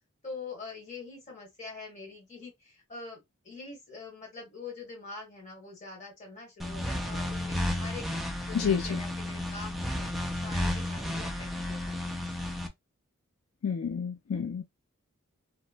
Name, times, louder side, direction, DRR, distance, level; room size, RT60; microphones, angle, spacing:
voice 1, 0.2-12.4, left 3 dB, 35° left, 1.4 m, -45 dB
sound 1, 6.6-12.7, left 1 dB, ahead, 0.3 m, -33 dB
voice 2, 8.5-9.0 13.6-14.6, left 6 dB, 75° left, 0.4 m, -29 dB
2.9 x 2.2 x 2.4 m
head